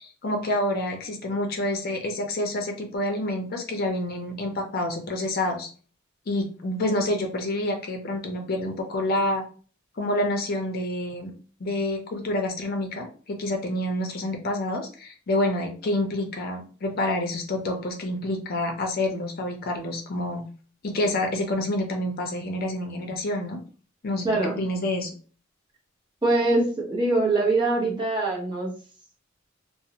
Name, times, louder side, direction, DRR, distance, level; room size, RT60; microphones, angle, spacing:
voice 1, 0.0-5.7 6.3-9.4 10.0-11.3 11.6-20.4 20.8-23.6 24.0-25.1, left 1 dB, 50° left, 3 dB, 0.5 m, -28 dB
voice 2, 24.2-24.6 26.2-28.7, right 2 dB, 25° right, -2 dB, 0.8 m, -23 dB
2.5 x 2.0 x 2.8 m, 0.39 s
head